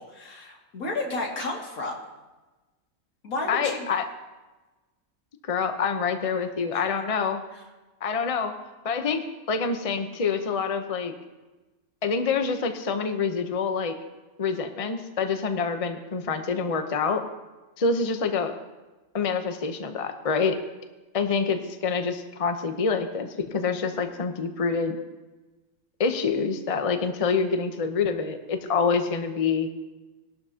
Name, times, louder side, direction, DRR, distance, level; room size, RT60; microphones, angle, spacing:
voice 1, 0.0-1.9 3.2-3.9 6.7-6.8, left 2 dB, 85° left, -1 dB, 2.7 m, -32 dB
voice 2, 3.5-4.1 5.4-7.4 8.0-8.5 8.8-11.1 12.0-14.0 14.4-17.2 17.8-18.5 19.1-20.6 21.1-25.0 26.0-29.7, left 5 dB, 30° left, 7 dB, 0.8 m, -26 dB
20.0 x 12.0 x 2.8 m, 1.2 s
omnidirectional pair, 1.5 m